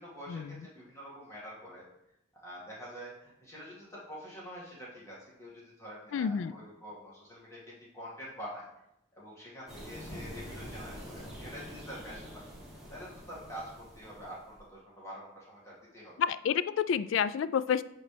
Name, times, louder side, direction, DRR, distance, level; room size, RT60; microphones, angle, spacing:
voice 1, 0.0-1.9 2.3-8.7 9.1-16.1, equal, 15° left, -6 dB, 2.1 m, -46 dB
voice 2, 6.1-6.5 16.2-17.8, left 7 dB, 70° left, 14 dB, 0.3 m, -29 dB
sound 1, 9.7-14.6, equal, ahead, 2.2 m, -46 dB
11.0 x 4.2 x 3.4 m, 0.83 s
head